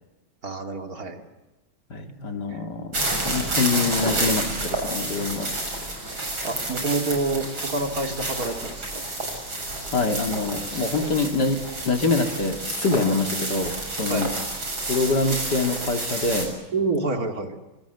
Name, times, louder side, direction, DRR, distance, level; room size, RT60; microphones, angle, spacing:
voice 1, 0.4-1.2 2.5-2.6 6.4-9.0 14.1-14.3 16.7-17.6, right 3 dB, 45° right, 4 dB, 3.1 m, -28 dB
voice 2, 1.9-5.5 9.9-11.6 11.9-14.3 14.9-16.5, left 3 dB, 55° left, 5 dB, 3.0 m, -25 dB
sound 1, 2.9-16.5, right 2 dB, 80° right, 7.7 m, -29 dB
26.0 x 25.5 x 8.2 m, 1.1 s
omnidirectional pair, 2.2 m